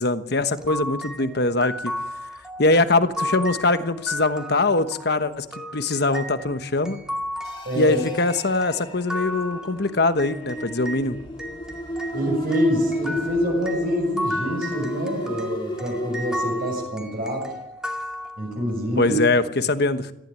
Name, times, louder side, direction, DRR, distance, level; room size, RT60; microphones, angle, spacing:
voice 1, 0.0-1.9 2.6-5.5 5.7-7.0 7.8-11.2 19.0-20.1, left 2 dB, 55° left, 10 dB, 1.2 m, -22 dB
sound 1, 0.6-11.1 11.4-18.8, equal, 5° right, 2.2 m, -34 dB
sound 2, 7.4-16.9, equal, 25° left, 1.8 m, -33 dB
voice 2, 7.6-8.0 12.1-17.5 18.4-19.2, equal, 45° right, -1 dB, 7.0 m, -26 dB
18.5 x 15.0 x 9.6 m, 0.88 s
head